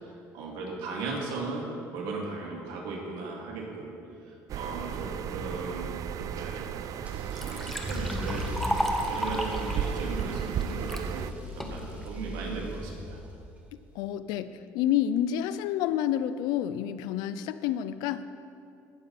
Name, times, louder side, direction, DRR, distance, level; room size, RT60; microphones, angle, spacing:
voice 1, 0.3-3.9 4.3-6.7 7.3-11.2 11.6-13.2, right 3 dB, 75° right, -1 dB, 2.5 m, -37 dB
sound 1, 4.5-11.3, right 9 dB, 55° right, 0.5 m, -35 dB
Liquid, 6.6-6.7 7.0-11.1 11.6-12.1, equal, 5° left, 1.2 m, -33 dB
Car / Engine starting / Accelerating revving vroom, 7.1-13.5, equal, 20° right, 1.8 m, -38 dB
voice 2, 14.0-18.3, left 10 dB, 80° left, 14 dB, 0.5 m, -29 dB
17.5 x 7.0 x 4.2 m, 2.5 s
supercardioid pair, 85°, 7 cm